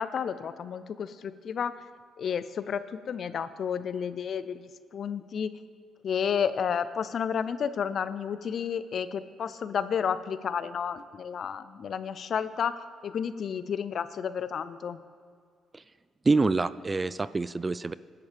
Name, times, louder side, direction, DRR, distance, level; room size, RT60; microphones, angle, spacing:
voice 1, 0.0-1.8 2.2-5.5 6.0-15.0, left 7 dB, 60° left, 14 dB, 0.5 m, -31 dB
voice 2, 16.3-17.9, right 3 dB, 25° right, 16 dB, 0.3 m, -26 dB
18.5 x 10.5 x 3.4 m, 2.1 s
cardioid pair, 90°, 0 cm